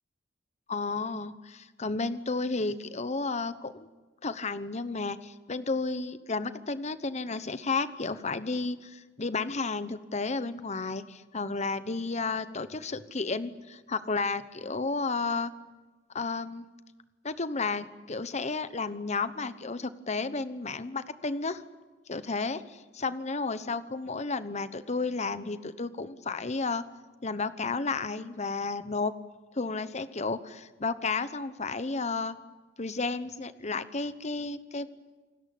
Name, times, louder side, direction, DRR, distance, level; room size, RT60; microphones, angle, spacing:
voice 1, 0.7-3.9 4.2-15.5 16.1-16.7 17.2-21.6 22.1-26.8 27.2-29.1 29.5-32.4 32.8-34.9, left 3 dB, 40° left, 13 dB, 1.0 m, -32 dB
28.5 x 19.5 x 8.6 m, 1.2 s
head